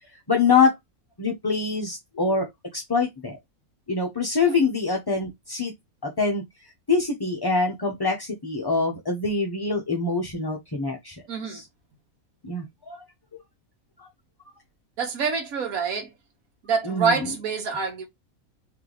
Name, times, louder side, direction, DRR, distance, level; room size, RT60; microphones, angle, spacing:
voice 1, 0.3-0.8 1.2-3.4 3.9-5.7 6.0-6.4 6.9-11.2 11.5-11.6 12.4-13.0 13.3-13.4 14.0-14.1 16.8-17.3, left 4 dB, 25° left, 0.6 m, -24 dB
voice 2, 11.3-11.6 15.0-16.1 16.6-18.1, right 5 dB, 75° right, 1.5 m, -26 dB
3.3 x 3.2 x 3.8 m
omnidirectional pair, 1.5 m